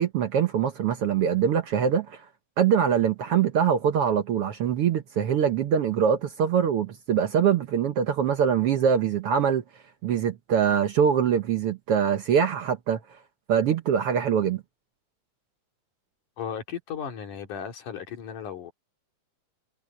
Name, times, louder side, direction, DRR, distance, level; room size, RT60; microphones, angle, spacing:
voice 1, 0.0-2.2 2.6-9.6 10.0-13.0 13.5-14.6, right 8 dB, 65° right, 1.6 m, -23 dB
voice 2, 16.4-18.7, left 8 dB, 85° left, 4.1 m, -35 dB
omnidirectional pair, 3.5 m